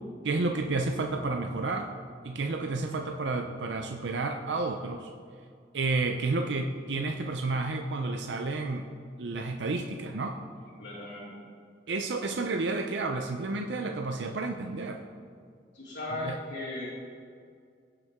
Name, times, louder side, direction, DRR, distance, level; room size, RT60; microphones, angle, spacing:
voice 1, 0.2-1.9 2.2-5.1 5.7-8.9 9.2-10.4 11.9-15.0 16.2-16.4, right 3 dB, 75° right, 4 dB, 0.6 m, -31 dB
voice 2, 10.8-11.4 15.7-16.9, left 2 dB, 80° left, -10 dB, 2.9 m, -37 dB
17.0 x 6.8 x 3.6 m, 2.2 s
head